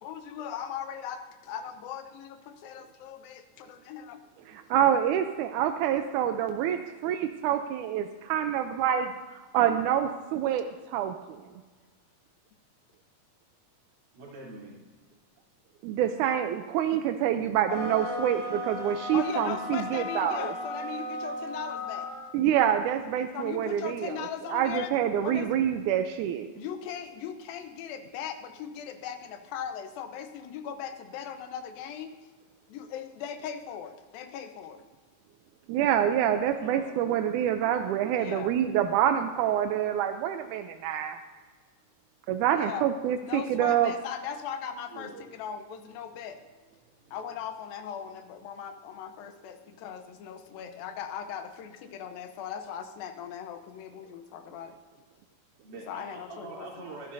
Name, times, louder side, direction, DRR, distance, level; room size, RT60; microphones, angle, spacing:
voice 1, 0.0-4.2 19.1-22.1 23.3-24.9 25.2-25.5 26.5-32.1 32.7-34.8 38.2-38.5 42.6-42.9 43.2-46.4 47.1-54.8 55.9-56.8, left 8 dB, 85° left, 8 dB, 2.7 m, -39 dB
voice 2, 4.5-9.1 9.5-11.4 15.8-20.5 22.3-26.5 35.7-41.2 42.3-43.9, right 10 dB, 80° right, 7 dB, 1.8 m, -27 dB
voice 3, 14.1-14.9 36.6-36.9 44.9-45.3 47.0-47.2 50.5-50.7 55.6-57.1, right 3 dB, 65° right, -4 dB, 4.7 m, -44 dB
sound 1, 17.6-22.3, left 2 dB, 35° left, 5.1 m, -36 dB
23.0 x 11.5 x 2.6 m, 1.4 s
omnidirectional pair, 4.0 m